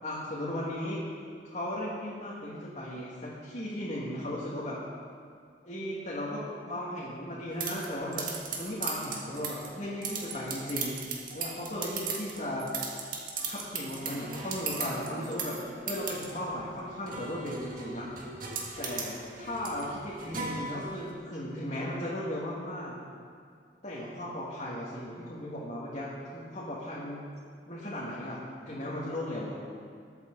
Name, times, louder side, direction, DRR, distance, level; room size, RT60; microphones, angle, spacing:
voice 1, 0.0-1.0 1.5-4.8 5.6-8.3 8.5-11.0 11.3-12.7 13.5-15.6 15.9-18.1 18.8-23.0 23.8-27.3 27.7-29.6, left 1 dB, 40° left, -8 dB, 2.2 m, -36 dB
sound 1, 7.6-21.1, right 4 dB, 50° right, 1.7 m, -38 dB
21.0 x 8.8 x 4.0 m, 2.1 s
head